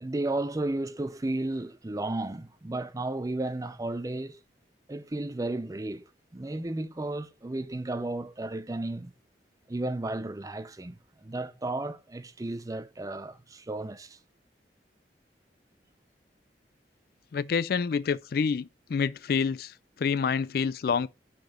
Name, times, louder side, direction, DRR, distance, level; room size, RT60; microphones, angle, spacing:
voice 1, 0.0-4.4 4.9-9.1 9.7-14.2, right 2 dB, 20° right, 0.5 m, -33 dB
voice 2, 17.3-19.7 20.0-21.1, left 6 dB, 55° left, 0.3 m, -27 dB
5.8 x 5.2 x 6.5 m
head